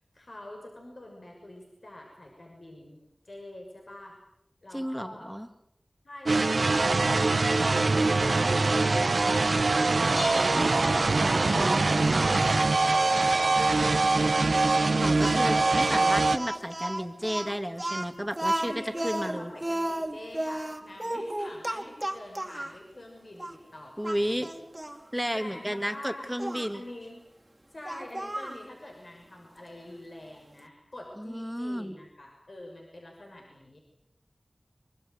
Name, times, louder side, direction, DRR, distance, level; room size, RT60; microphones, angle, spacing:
voice 1, 0.0-4.2 4.6-5.3 6.0-7.3 7.6-10.0 10.3-10.7 11.4-14.1 18.6-24.5 25.3-26.3 26.7-27.3 27.7-33.8, left 1 dB, 60° left, 0 dB, 6.1 m, -46 dB
voice 2, 4.7-5.5 11.5-12.4 15.0-19.5 24.0-24.5 25.1-26.8 31.2-32.0, equal, 5° right, 8 dB, 2.3 m, -32 dB
sound 1, 6.3-16.4, right 3 dB, 80° right, 1.1 m, -23 dB
sound 2, 10.2-11.7, left 2 dB, 35° left, 1.9 m, -41 dB
Speech, 15.2-22.8 23.4-23.5 24.0-25.0 26.4-26.7 27.9-28.6, right 1 dB, 20° right, 2.7 m, -33 dB
25.0 x 24.0 x 8.1 m, 0.79 s
wide cardioid pair, 60°, 0 cm